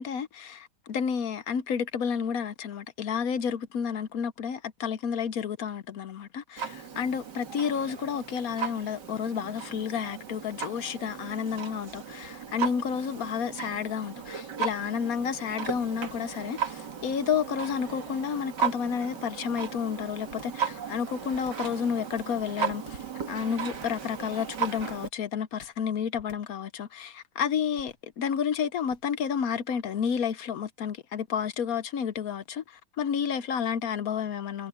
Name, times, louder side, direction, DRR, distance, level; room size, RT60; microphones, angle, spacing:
voice 1, 0.0-23.0 23.3-34.7, left 7 dB, 60° left, 1.2 m, -31 dB
Clock, 6.6-25.1, right 7 dB, 80° right, 2.5 m, -36 dB
sound 1, 20.3-20.7 21.3-21.7 22.2-23.2 23.7-24.1 24.8-25.2 25.6-25.9 26.2-26.6 27.7-28.1 28.9-29.2, left 6 dB, 80° left, 2.0 m, -52 dB
omnidirectional pair, 1.8 m